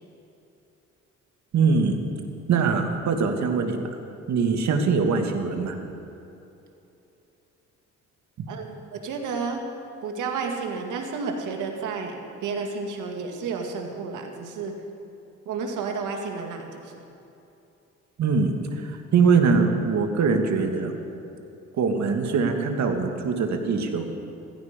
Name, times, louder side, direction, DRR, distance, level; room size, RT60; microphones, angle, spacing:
voice 1, 1.5-2.0 2.5-3.8 4.3-5.8 18.2-20.9 21.7-24.1, right 5 dB, 65° right, 4 dB, 2.0 m, -22 dB
voice 2, 8.5-9.6 10.0-14.8 15.5-17.0, right 5 dB, 80° right, 3 dB, 2.1 m, -31 dB
15.5 x 15.0 x 5.2 m, 2.8 s
cardioid pair, 90°, 30 cm